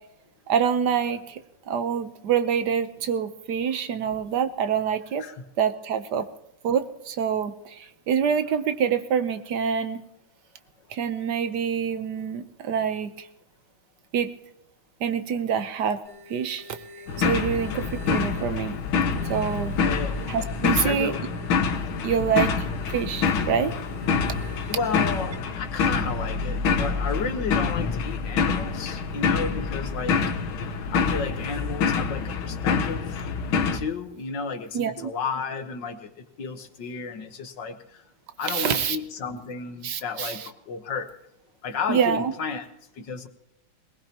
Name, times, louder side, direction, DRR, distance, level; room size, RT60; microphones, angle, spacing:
voice 1, 0.5-1.4 1.7-5.2 5.6-6.3 6.6-10.0 10.9-13.3 14.1-14.3 15.0-16.0 16.3-16.8 17.2-18.8 19.2-19.8 20.3-21.1 22.0-23.7 34.7-35.1 38.5-39.0 39.8-40.5 41.9-42.3, right 7 dB, 60° right, 10 dB, 1.4 m, -26 dB
sound 1, 16.0-25.4, left 2 dB, 20° left, 3.8 m, -47 dB
sound 2, 17.1-33.8, left 5 dB, 90° left, 1.9 m, -26 dB
voice 2, 19.8-20.2 20.6-21.2 22.2-22.4 24.7-30.2 30.9-33.2 33.7-38.0 38.4-41.1 41.6-42.7 42.9-43.3, left 5 dB, 65° left, 8 dB, 1.8 m, -32 dB
21.0 x 19.0 x 2.9 m, 0.86 s
omnidirectional pair, 2.2 m